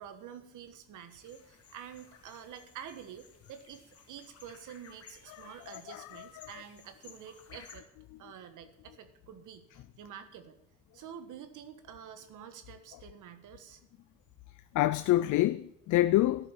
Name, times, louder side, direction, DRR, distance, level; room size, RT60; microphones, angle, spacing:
voice 1, 0.0-7.8 8.2-10.6 10.9-13.8, right 8 dB, 85° right, 1.5 m, -48 dB
sound 1, 1.1-7.8, left 6 dB, 50° left, 2.3 m, -57 dB
voice 2, 5.3-6.6 14.7-16.5, left 15 dB, 75° left, 0.5 m, -28 dB
12.5 x 7.3 x 7.0 m
cardioid pair, 90°, 30 cm